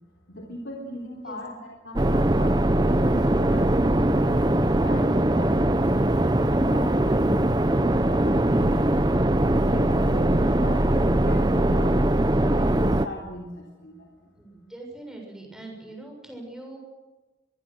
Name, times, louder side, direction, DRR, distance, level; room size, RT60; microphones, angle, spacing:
voice 1, 0.3-8.9 9.3-12.0 12.4-14.3, equal, 85° left, -2 dB, 3.6 m, -38 dB
sound 1, 2.0-13.1, right 1 dB, 25° right, 0.8 m, -21 dB
voice 2, 14.4-16.8, right 2 dB, 5° right, 1 dB, 7.1 m, -42 dB
24.5 x 23.0 x 6.4 m, 1.2 s
head